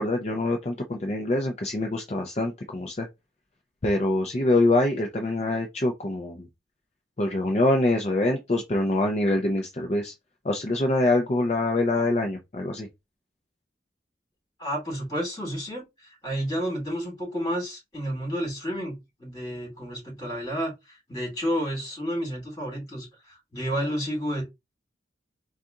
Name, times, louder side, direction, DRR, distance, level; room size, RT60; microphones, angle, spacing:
voice 1, 0.0-3.1 3.8-6.5 7.2-10.1 10.4-12.9, left 2 dB, 35° left, 0.5 m, -25 dB
voice 2, 14.6-24.4, equal, 20° left, 2.6 m, -31 dB
4.1 x 2.4 x 3.6 m
head